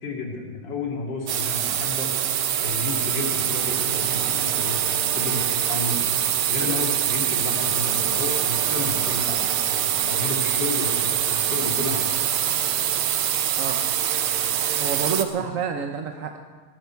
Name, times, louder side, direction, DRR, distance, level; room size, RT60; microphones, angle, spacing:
voice 1, 0.0-4.8 5.1-6.0 6.5-9.4 9.6-12.0, left 3 dB, 55° left, -1 dB, 3.2 m, -32 dB
sound 1, 1.3-15.2, right 10 dB, 90° right, 1.8 m, -24 dB
voice 2, 14.8-16.4, right 7 dB, 60° right, 4 dB, 0.9 m, -28 dB
20.0 x 12.5 x 4.6 m, 1.4 s
omnidirectional pair, 2.3 m